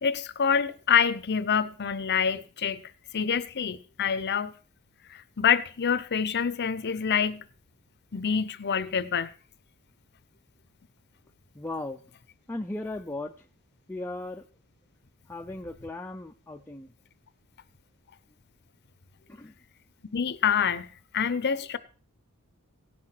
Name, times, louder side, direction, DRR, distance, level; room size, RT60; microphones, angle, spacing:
voice 1, 0.0-2.8 3.1-4.5 5.1-7.4 8.1-9.3 20.1-20.9 21.1-21.8, left 7 dB, 50° left, 0.7 m, -26 dB
voice 2, 11.5-12.0 12.5-13.3 13.9-14.4 15.3-16.9 19.4-19.5, left 2 dB, 10° left, 0.4 m, -36 dB
17.5 x 5.9 x 4.5 m
head